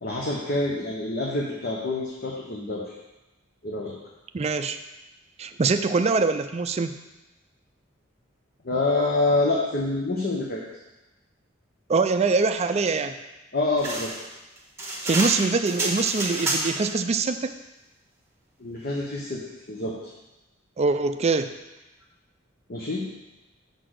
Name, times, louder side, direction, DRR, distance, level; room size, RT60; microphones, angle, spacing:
voice 1, 0.0-2.9 3.6-3.9 8.6-10.6 13.5-14.1 18.6-20.1 22.7-23.1, left 2 dB, 50° left, -3 dB, 1.0 m, -27 dB
voice 2, 4.3-4.8 5.4-6.9 11.9-13.1 15.0-17.5 20.8-21.5, right 4 dB, 30° right, 8 dB, 0.4 m, -23 dB
sound 1, 13.8-16.9, right 2 dB, 15° right, 1.5 m, -29 dB
6.6 x 4.1 x 6.4 m, 1.0 s
head